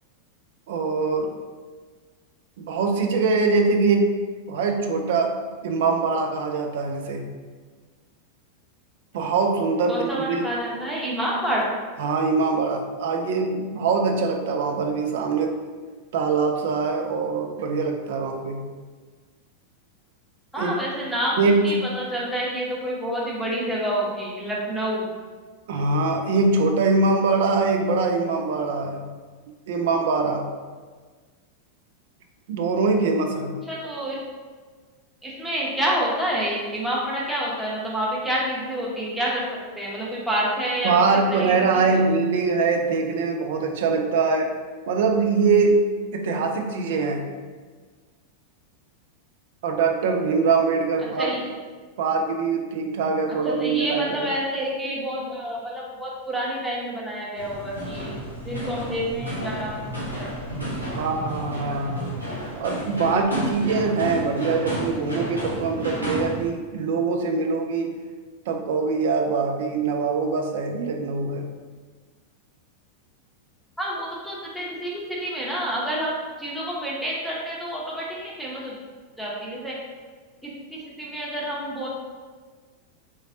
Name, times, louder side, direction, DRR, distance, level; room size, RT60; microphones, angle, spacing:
voice 1, 0.7-1.3 2.6-4.1 4.5-5.3 5.6-7.3 9.1-10.5 12.0-15.6 16.1-18.7 20.6-20.8 21.4-21.8 25.7-29.0 29.7-30.5 32.5-33.5 40.8-44.5 44.9-45.8 46.1-47.2 49.6-51.3 52.0-54.3 60.9-62.1 62.6-67.9 68.5-71.5, right 4 dB, 55° right, 4 dB, 0.4 m, -23 dB
voice 2, 9.9-11.6 20.5-21.4 21.6-25.1 33.7-34.2 35.2-39.4 39.8-42.0 51.2-51.4 53.3-58.1 58.4-60.3 73.8-78.7 79.2-79.7 80.4-81.9, right 1 dB, ahead, -6 dB, 0.9 m, -28 dB
sound 1, 57.3-66.4, equal, 85° right, 0.9 m, -31 dB
3.6 x 3.1 x 2.7 m, 1.5 s
figure-of-eight pair, 90°, 0 cm